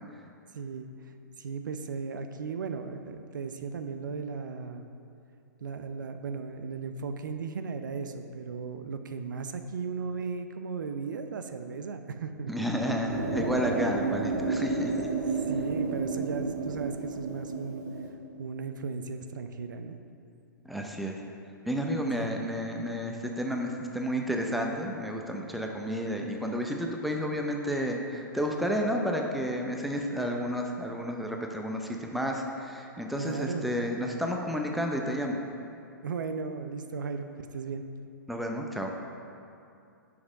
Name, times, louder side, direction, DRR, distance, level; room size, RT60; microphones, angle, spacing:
voice 1, 0.5-4.9 5.6-12.7 15.5-17.8 18.4-20.0 22.2-22.3 33.2-33.7 36.0-37.8, right 5 dB, 70° right, 8 dB, 0.5 m, -36 dB
voice 2, 12.5-15.1 20.6-21.1 21.7-35.4 38.3-38.9, equal, ahead, 1 dB, 0.6 m, -31 dB
sound 1, 13.1-18.1, right 4 dB, 55° right, 1.2 m, -31 dB
6.1 x 6.0 x 5.1 m, 2.6 s
figure-of-eight pair, 115°, 11 cm